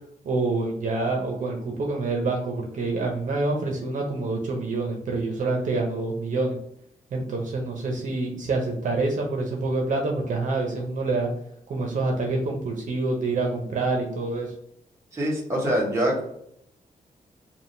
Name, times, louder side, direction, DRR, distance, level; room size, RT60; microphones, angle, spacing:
voice 1, 0.2-6.6 7.1-11.3 11.7-14.5, right 3 dB, 65° right, 1 dB, 0.7 m, -27 dB
voice 2, 15.1-16.2, right 1 dB, 20° right, -4 dB, 1.2 m, -24 dB
3.5 x 2.5 x 4.3 m, 0.71 s
wide cardioid pair, 165°, 14 cm